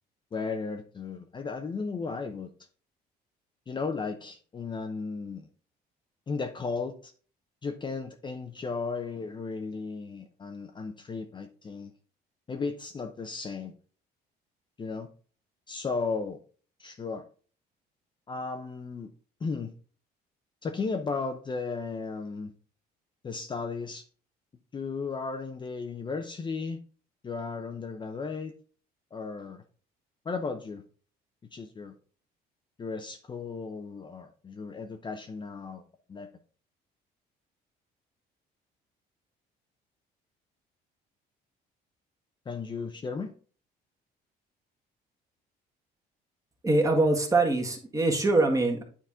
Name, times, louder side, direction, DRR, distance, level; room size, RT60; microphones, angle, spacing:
voice 1, 0.3-2.5 3.7-5.5 6.3-7.1 7.6-11.9 12.5-13.8 14.8-15.1 15.7-16.4 16.8-17.2 18.3-19.1 19.4-19.7 20.6-22.5 23.2-24.0 24.7-26.8 27.2-28.5 29.1-29.6 30.2-30.8 31.5-32.0 32.8-35.8 36.1-36.3 42.5-43.3, left 4 dB, 25° left, 5 dB, 0.7 m, -35 dB
voice 2, 46.6-48.8, right 2 dB, 20° right, 2 dB, 1.6 m, -23 dB
9.0 x 4.1 x 3.6 m, 0.41 s
cardioid pair, 110°, 17 cm